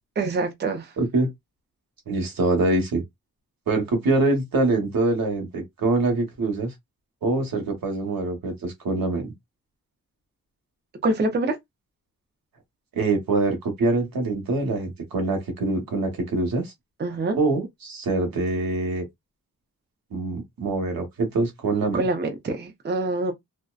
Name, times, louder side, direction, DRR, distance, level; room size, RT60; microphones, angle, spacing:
voice 1, 0.2-0.9 11.0-11.6 17.0-17.4 21.9-23.3, right 2 dB, 30° right, 0.5 m, -25 dB
voice 2, 1.0-1.3 2.1-3.0 3.7-6.7 7.2-9.3 12.9-16.7 17.4-19.0 20.1-22.0, right 2 dB, 90° right, 1.0 m, -24 dB
2.5 x 2.1 x 2.3 m
wide cardioid pair, 170°, 34 cm